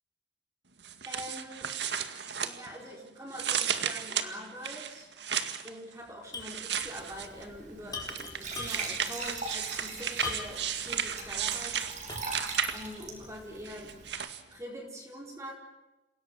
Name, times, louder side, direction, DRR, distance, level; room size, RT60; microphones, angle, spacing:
sound 1, 0.8-2.9 3.3-5.7 6.4-7.4 8.0-13.0 13.7-14.4, right 8 dB, 70° right, 2.0 m, -34 dB
voice 1, 1.1-1.8 2.4-5.1 5.6-11.8 12.7-14.0 14.5-15.5, equal, 15° right, 0 dB, 4.4 m, -44 dB
sound 2, 6.3-6.6 6.9-7.0 7.9-9.0 10.2-10.7 11.2-11.3 12.1-12.5, left 4 dB, 20° left, 4.0 m, -39 dB
Glass / Trickle dribble / Fill (with liquid), 6.8-14.1, right 4 dB, 40° right, 5.4 m, -42 dB
29.0 x 17.5 x 7.9 m, 1.0 s
head